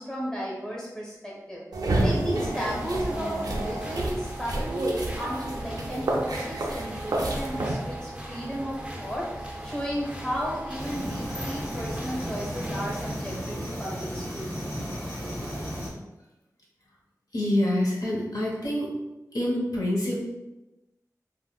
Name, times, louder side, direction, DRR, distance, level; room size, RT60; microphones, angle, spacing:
voice 1, 0.0-14.8, equal, 10° left, -4 dB, 0.8 m, -34 dB
sound 1, 1.7-7.7, right 1 dB, 75° right, 0.5 m, -29 dB
sound 2, 2.3-13.1, right 1 dB, 15° right, 0.5 m, -39 dB
sound 3, 10.8-15.9, equal, 30° left, 1.4 m, -34 dB
voice 2, 17.3-18.9 19.3-20.3, left 1 dB, 70° left, -5 dB, 0.9 m, -26 dB
3.7 x 2.1 x 2.3 m, 1.0 s
wide cardioid pair, 85°, 6 cm